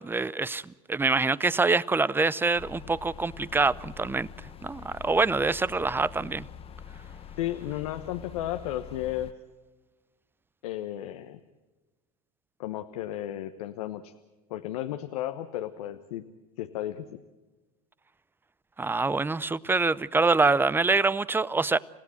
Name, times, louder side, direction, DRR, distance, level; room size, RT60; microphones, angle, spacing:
voice 1, 0.0-4.3 4.6-6.5 18.8-21.8, right 3 dB, 10° right, 0.7 m, -25 dB
sound 1, 2.5-9.3, left 8 dB, 30° left, 1.1 m, -45 dB
voice 2, 7.4-9.3 10.6-11.4 12.6-14.1 14.5-16.2 16.6-17.2, left 13 dB, 75° left, 1.2 m, -34 dB
29.0 x 16.0 x 7.8 m
hypercardioid pair, 95°, 19 cm